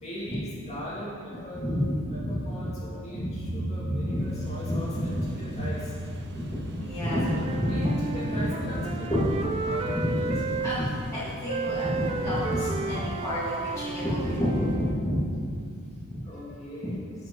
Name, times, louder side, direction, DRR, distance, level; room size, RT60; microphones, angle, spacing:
voice 1, 0.0-1.6 2.1-5.9 7.3-9.1 9.6-10.6 16.2-17.0, equal, 30° left, -7 dB, 2.3 m, -39 dB
voice 2, 1.6-2.4 3.1-4.2 4.6-5.1 5.5-5.6 6.3-7.8 8.3-8.4 9.1-15.2 16.0-16.2 16.8-16.9, equal, 15° left, -12 dB, 1.8 m, -29 dB
sound 1, 3.3-8.8, right 1 dB, 90° right, 0.8 m, -37 dB
sound 2, 4.1-14.9, right 1 dB, 55° right, 1.0 m, -44 dB
Wind instrument woodwind instrument, 6.9-10.8 11.5-15.0, right 4 dB, 25° right, 0.4 m, -33 dB
12.0 x 8.4 x 3.0 m, 2.2 s
head